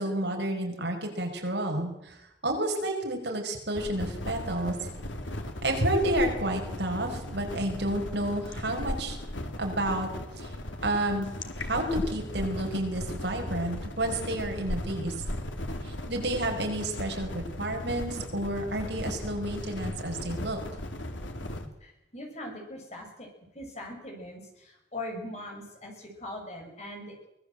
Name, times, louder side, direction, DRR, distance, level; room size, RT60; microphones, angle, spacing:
voice 1, 0.0-4.8 5.6-9.2 9.6-10.1 10.4-10.5 10.8-11.3 11.6-15.1 15.8-20.6, right 1 dB, 65° right, 3 dB, 5.3 m, -30 dB
sound 1, 3.7-21.7, left 1 dB, 90° left, 2.6 m, -37 dB
voice 2, 21.8-23.3 23.5-27.1, left 1 dB, 35° left, 2 dB, 6.8 m, -41 dB
24.0 x 18.5 x 7.9 m, 0.88 s
head